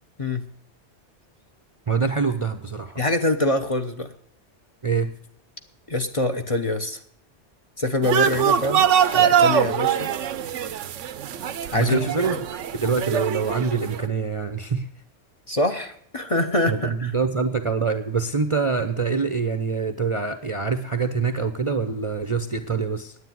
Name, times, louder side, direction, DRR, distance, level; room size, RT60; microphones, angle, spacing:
voice 1, 1.9-3.0 4.8-5.1 11.7-12.4 12.7-14.9 16.7-23.2, right 5 dB, 35° right, 8 dB, 0.6 m, -25 dB
voice 2, 3.0-4.1 5.9-7.0 7.8-8.9 9.1-10.1 11.7-12.1 15.5-17.1, left 2 dB, 30° left, 5 dB, 0.9 m, -24 dB
sound 1, 8.0-14.0, right 9 dB, 80° right, 1.0 m, -23 dB
9.8 x 8.9 x 9.2 m, 0.66 s
omnidirectional pair, 1.2 m